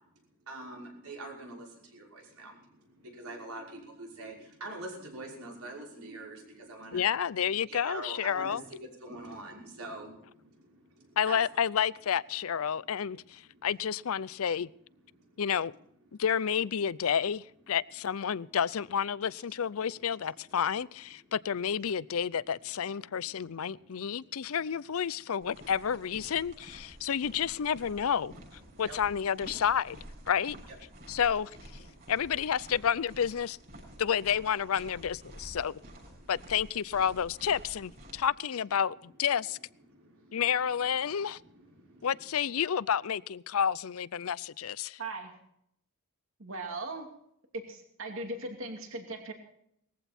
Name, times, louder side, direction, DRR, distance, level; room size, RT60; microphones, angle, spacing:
voice 1, 0.5-7.1 7.7-11.4 13.4-13.6 15.1-15.4 21.2-21.3 23.1-24.6 26.9-27.1 28.7-29.0 31.0-31.3 31.9-32.1 33.8-34.0 35.4-35.5 36.1-36.3 38.1-38.2 39.9-40.4 41.1-42.1, right 2 dB, 85° right, 5.7 m, -46 dB
voice 2, 6.9-8.6 11.2-14.7 15.4-15.7 16.2-28.3 28.8-30.0 30.3-30.6 31.1-31.5 32.1-33.6 34.0-35.8 36.3-39.6 40.3-41.4 42.0-45.0, left 8 dB, 80° left, 0.5 m, -30 dB
sound 1, 25.4-38.2, equal, 40° right, 7.1 m, -50 dB
voice 3, 45.0-45.3 46.4-47.1 47.5-49.3, right 2 dB, 65° right, 2.8 m, -38 dB
19.5 x 15.0 x 4.4 m
head